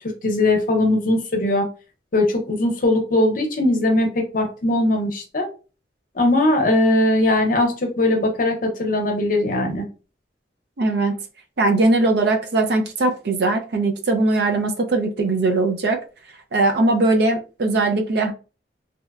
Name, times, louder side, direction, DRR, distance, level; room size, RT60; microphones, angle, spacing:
voice 1, 0.2-1.7 2.1-5.5 6.2-9.9, left 1 dB, 50° left, 0.7 m, -20 dB
voice 2, 10.8-11.2 11.6-16.0 16.5-18.3, right 2 dB, 60° right, 0.5 m, -20 dB
2.8 x 2.1 x 2.3 m
head